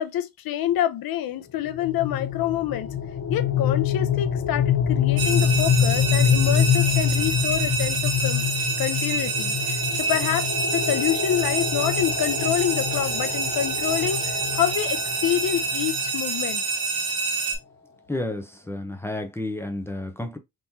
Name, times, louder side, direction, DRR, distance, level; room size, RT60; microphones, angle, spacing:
voice 1, 0.0-2.9 3.3-8.5 8.8-10.5 10.7-16.6, left 11 dB, 75° left, 0.6 m, -27 dB
sound 1, 1.7-16.5, left 8 dB, 45° left, 0.8 m, -25 dB
sound 2, 5.2-17.6, right 4 dB, 75° right, 1.6 m, -27 dB
voice 2, 18.1-20.4, left 2 dB, 5° left, 0.6 m, -31 dB
3.6 x 2.9 x 2.7 m
wide cardioid pair, 145°, 36 cm